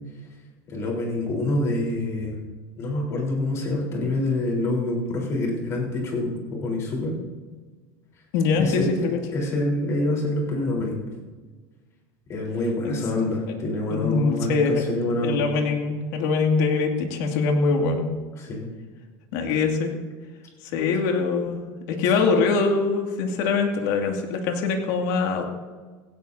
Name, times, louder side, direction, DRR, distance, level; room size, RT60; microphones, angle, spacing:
voice 1, 0.7-2.4 2.8-7.1 8.6-8.9 9.3-11.0 12.3-15.5 18.4-18.7, left 2 dB, 35° left, -2 dB, 3.9 m, -26 dB
voice 2, 8.3-9.2 12.8-12.9 13.9-14.8 15.2-18.1 19.3-19.9 20.7-21.6 21.9-25.4, left 4 dB, 70° left, 2 dB, 2.3 m, -23 dB
17.0 x 17.0 x 2.8 m, 1.4 s
cardioid pair, 155°, 9 cm